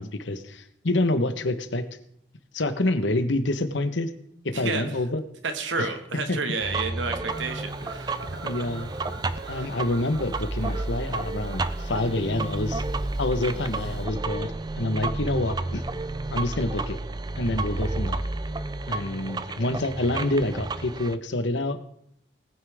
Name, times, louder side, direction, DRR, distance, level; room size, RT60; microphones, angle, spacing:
voice 1, 0.0-1.9 2.5-4.1 4.4-5.2 5.8-5.9 6.3-6.4 8.4-8.9 9.5-12.8 13.2-14.5 14.8-15.8 16.3-17.0 17.4-18.2 18.9-21.8, left 2 dB, 75° left, 10 dB, 1.2 m, -27 dB
voice 2, 4.5-4.9 5.4-8.7 9.5-9.7, right 3 dB, 80° right, 7 dB, 1.7 m, -31 dB
sound 1, 6.6-21.2, right 2 dB, 20° right, 0.4 m, -31 dB
Fowl / Bird vocalization bird call bird song, 7.3-14.1, right 3 dB, 65° right, 2.0 m, -45 dB
19.5 x 9.7 x 3.6 m, 0.71 s
head